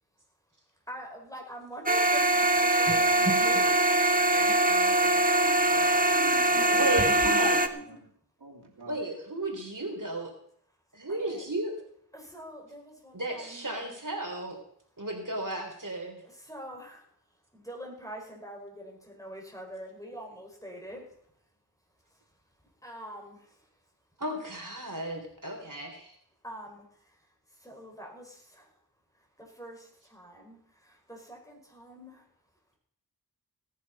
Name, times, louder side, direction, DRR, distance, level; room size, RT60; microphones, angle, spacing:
voice 1, 0.9-3.8 7.3-7.9 11.2-11.4 12.1-13.9 16.5-17.0 17.5-21.1 22.8-23.6 26.4-26.8 27.6-28.3 29.6-29.8 30.1-30.6 31.1-32.2, equal, 10° left, -1 dB, 5.5 m, -44 dB
sound 1, 1.9-7.7, right 2 dB, 20° right, 1.1 m, -23 dB
voice 2, 4.3-5.2 5.7-8.1 8.4-9.0, right 3 dB, 80° right, -1 dB, 3.1 m, -44 dB
voice 3, 6.7-7.6 8.9-10.3 11.0-11.7 13.1-14.6 15.0-16.1 24.2-26.1, right 1 dB, 50° right, 2 dB, 3.5 m, -33 dB
17.0 x 10.5 x 5.4 m, 0.65 s
wide cardioid pair, 50°, 39 cm